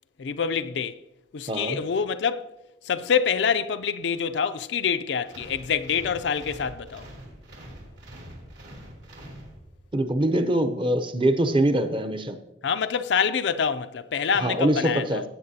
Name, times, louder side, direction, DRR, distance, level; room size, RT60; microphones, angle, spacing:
voice 1, 0.2-1.0 1.3-2.5 2.8-7.1 12.6-15.2, left 6 dB, 70° left, 0.4 m, -26 dB
voice 2, 1.5-1.8 9.9-12.4 14.4-15.2, right 1 dB, 25° right, 0.6 m, -23 dB
sound 1, 5.3-10.0, right 1 dB, 70° right, 2.7 m, -44 dB
16.0 x 8.1 x 2.8 m
head